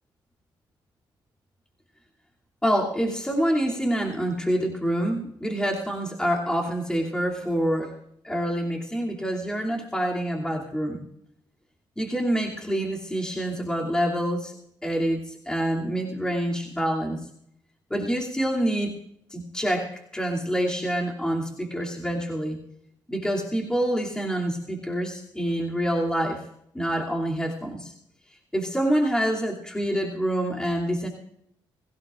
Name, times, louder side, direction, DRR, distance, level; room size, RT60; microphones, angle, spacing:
voice 1, 2.6-7.9 8.2-11.0 12.0-14.5 14.8-17.3 17.9-19.0 19.3-22.6 23.1-26.4 26.7-27.9 28.5-31.1, equal, 10° left, -2 dB, 2.7 m, -26 dB
22.5 x 16.0 x 2.5 m, 0.73 s
cardioid pair, 105°, 9 cm